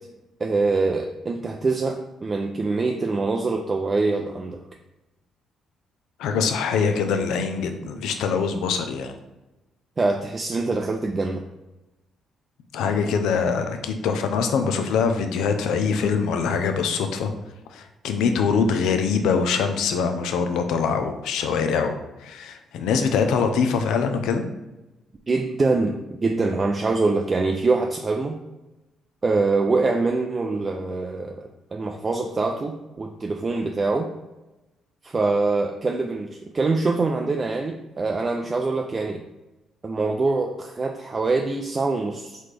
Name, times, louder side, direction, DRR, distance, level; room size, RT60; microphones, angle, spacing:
voice 1, 0.4-4.6 10.0-11.4 25.3-28.4 29.2-34.1 35.0-39.2 39.8-42.4, right 3 dB, 30° right, 3 dB, 0.3 m, -24 dB
voice 2, 6.2-9.1 12.7-17.3 17.7-22.0 22.2-24.5, left 5 dB, 85° left, 7 dB, 0.5 m, -23 dB
4.1 x 3.2 x 3.3 m, 1.0 s
cardioid pair, 90°, 0 cm